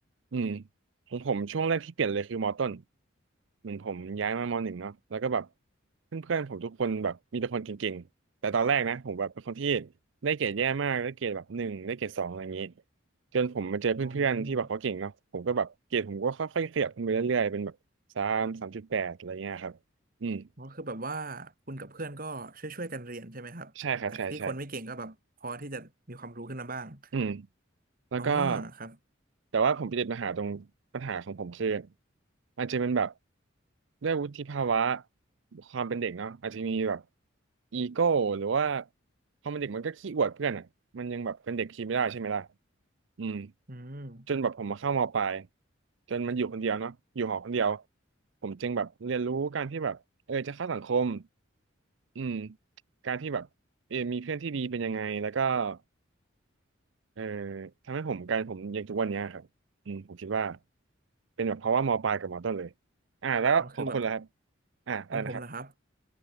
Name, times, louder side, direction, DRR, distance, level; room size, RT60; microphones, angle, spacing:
voice 1, 0.3-0.6 1.1-2.8 3.6-5.5 6.1-8.0 8.4-9.9 10.2-12.7 13.3-17.7 18.2-19.8 20.2-20.5 23.8-24.5 27.1-27.5 28.1-28.6 29.5-30.7 30.9-31.9 32.6-33.1 34.0-35.0 35.5-37.0 37.7-38.9 39.4-40.7 40.9-42.5 43.2-43.5 44.3-45.5 46.1-47.8 48.4-50.0 50.3-51.2 52.2-52.6 53.0-53.5 53.9-55.8 57.2-59.5 59.9-60.6 61.4-62.7 63.2-64.2 64.9-65.4, right 5 dB, 65° right, 0.5 m, -30 dB
voice 2, 14.0-14.7 20.6-23.7 24.1-27.1 28.2-29.0 43.7-44.3 63.6-64.0 65.1-65.7, right 2 dB, 45° right, 2.9 m, -39 dB
head